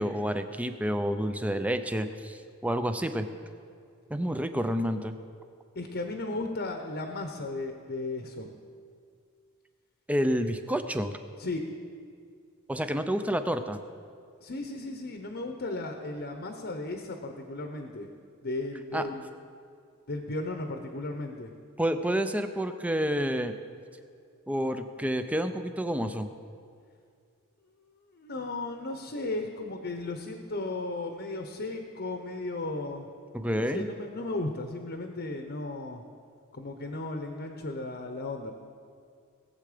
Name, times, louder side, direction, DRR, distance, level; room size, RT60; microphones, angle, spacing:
voice 1, 0.0-3.3 4.1-5.1 10.1-11.1 12.7-13.8 18.9-19.1 21.8-23.5 24.5-26.3 33.3-33.9, equal, 5° right, 9 dB, 0.5 m, -29 dB
voice 2, 5.7-8.5 11.4-11.6 14.4-18.1 18.4-19.2 20.1-21.5 28.1-33.1 33.5-36.0 36.5-38.5, left 2 dB, 50° left, 5 dB, 0.9 m, -35 dB
19.0 x 7.9 x 5.1 m, 2.3 s
head